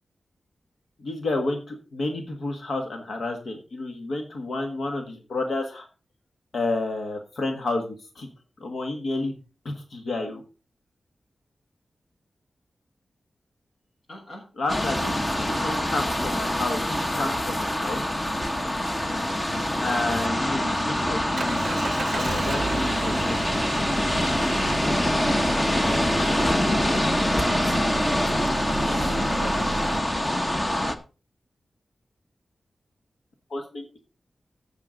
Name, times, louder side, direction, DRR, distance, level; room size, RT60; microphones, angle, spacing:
voice 1, 1.0-5.9 6.5-8.3 8.6-9.4 9.6-10.4 14.6-15.1 15.4-18.0 19.8-21.8 22.1-23.6 33.5-34.0, left 2 dB, 75° left, 4 dB, 1.5 m, -30 dB
voice 2, 14.1-14.4 28.9-29.7, left 1 dB, 60° left, -5 dB, 4.7 m, -39 dB
sound 1, 14.7-30.9, left 1 dB, 20° left, 0.9 m, -25 dB
Engine, 20.5-30.0, right 4 dB, 55° right, 0.5 m, -34 dB
15.0 x 5.9 x 3.9 m, 0.35 s
wide cardioid pair, 120°, 0 cm